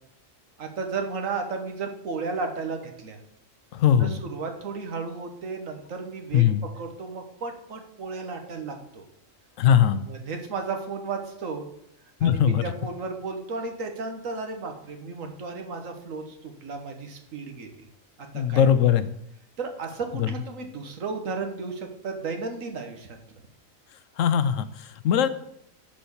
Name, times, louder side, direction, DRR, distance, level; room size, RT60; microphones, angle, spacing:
voice 1, 0.6-3.2 4.0-6.4 6.8-9.0 10.1-11.7 12.2-17.9 18.3-18.7 19.6-23.2, right 4 dB, 75° right, 4 dB, 1.6 m, -34 dB
voice 2, 3.7-4.2 6.3-6.7 9.6-10.1 12.2-12.7 18.3-19.1 20.2-20.3 24.2-25.3, left 9 dB, 75° left, 13 dB, 1.0 m, -21 dB
10.0 x 4.3 x 7.1 m, 0.76 s
omnidirectional pair, 1.4 m